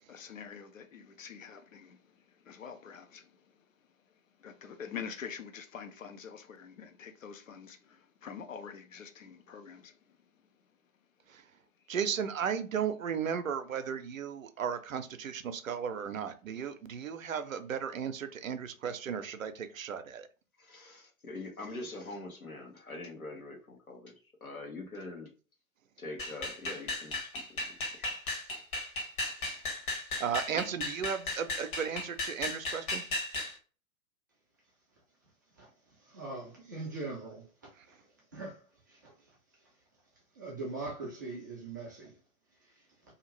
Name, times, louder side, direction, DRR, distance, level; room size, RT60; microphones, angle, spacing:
voice 1, 0.1-3.7 4.4-10.2, left 7 dB, 65° left, 0.6 m, -46 dB
voice 2, 11.9-20.3 30.2-33.0, right 7 dB, 70° right, 0.6 m, -35 dB
voice 3, 20.6-24.1 24.4-25.3 26.0-27.6 28.0-28.1, left 2 dB, 85° left, 1.2 m, -44 dB
sound 1, 26.2-33.5, left 2 dB, 35° left, 1.0 m, -36 dB
voice 4, 35.6-38.0 38.3-39.4 40.3-42.2 42.6-42.8, right 3 dB, 15° right, 0.4 m, -42 dB
2.7 x 2.5 x 2.9 m
figure-of-eight pair, 115°, 42 cm